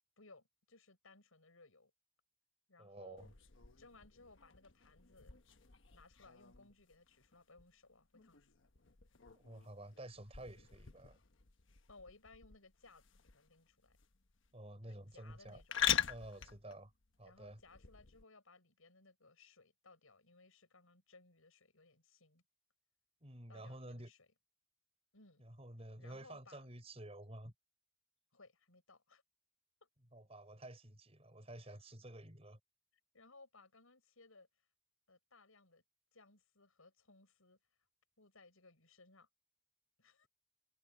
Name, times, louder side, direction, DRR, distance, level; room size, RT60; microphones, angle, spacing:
voice 1, 0.2-1.9 2.7-3.3 3.8-5.4 5.9-8.5 11.9-13.0 13.3-14.0 14.8-15.8 17.2-22.4 23.5-24.2 25.1-25.4 26.0-26.7 28.3-29.2 29.8-29.9 33.1-34.5 35.1-35.8 36.1-37.6 38.2-39.3 40.0-40.3, left 3 dB, 85° left, 6.4 m, -63 dB
voice 2, 2.8-3.3 9.3-11.2 14.5-15.6 16.1-16.9 17.2-17.6 23.2-24.1 25.4-27.5 30.1-32.6, right 1 dB, 30° right, 5.4 m, -51 dB
sound 1, 3.2-18.2, left 10 dB, 60° left, 1.2 m, -44 dB
head